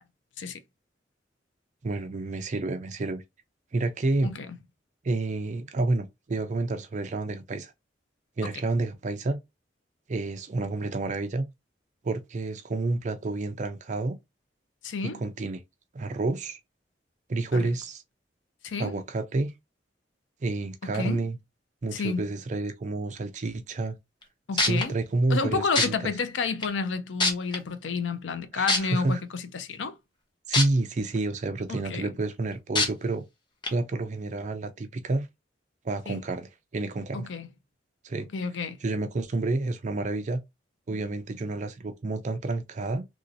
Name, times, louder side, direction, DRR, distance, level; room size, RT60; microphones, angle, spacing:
voice 1, 1.8-3.2 3.7-4.3 5.0-7.7 8.4-9.4 10.1-11.4 12.0-14.2 15.2-15.6 15.9-16.6 17.3-18.0 18.8-19.5 20.4-21.4 21.8-24.0 24.5-25.9 28.5-29.2 30.5-33.2 33.7-35.3 35.8-37.3 38.0-38.3 38.8-40.4 40.9-43.1, right 2 dB, 40° right, 0.4 m, -29 dB
voice 2, 14.8-15.2 17.6-17.7 18.6-18.9 20.8-21.2 21.9-22.3 24.5-24.9 25.3-30.0 31.7-32.1 36.1-36.2 37.1-37.5 38.3-38.8, left 4 dB, 90° left, 0.5 m, -30 dB
sound 1, 24.2-24.3 24.6-24.8 25.8-25.9 26.6-26.7 27.2-27.6 28.7-28.8 30.5-30.6 31.2-31.3 32.8-32.9 33.6-33.7, left 3 dB, 25° left, 0.8 m, -22 dB
3.0 x 2.7 x 2.6 m
head